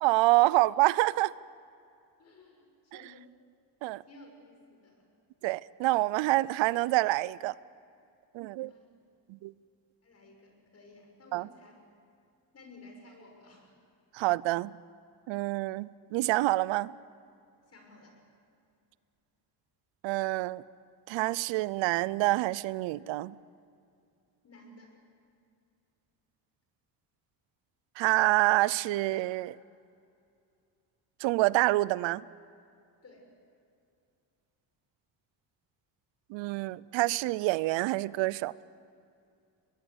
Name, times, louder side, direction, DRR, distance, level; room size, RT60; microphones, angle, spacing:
voice 1, 0.0-1.3 3.8-4.0 5.4-7.5 8.3-8.7 9.4-9.5 11.3-11.5 14.1-14.8 15.3-16.9 20.0-20.6 21.1-23.4 28.0-29.6 31.2-32.2 36.3-38.5, right 19 dB, 90° right, 0.6 m, -27 dB
voice 2, 2.2-3.3 4.1-5.1 8.7-8.8 10.0-11.8 12.5-13.7 17.7-18.1 24.4-24.9 33.0-33.3, left 2 dB, 35° left, 6.4 m, -54 dB
23.5 x 21.0 x 8.1 m
cardioid pair, 120°, 44 cm